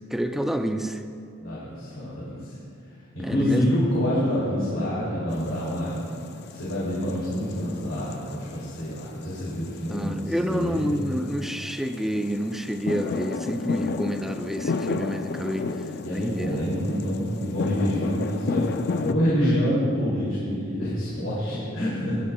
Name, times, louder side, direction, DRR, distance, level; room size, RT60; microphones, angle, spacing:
voice 1, 0.1-1.0 3.2-3.8 7.1-7.3 9.9-15.7 16.1-16.7 19.4-20.0, equal, ahead, 6 dB, 0.4 m, -29 dB
voice 2, 1.4-2.4 3.1-6.0 6.5-11.0 16.0-22.2, equal, 70° left, -8 dB, 2.7 m, -27 dB
sound 1, 5.3-19.1, left 4 dB, 55° left, 0.4 m, -33 dB
19.5 x 10.0 x 2.3 m, 2.4 s
head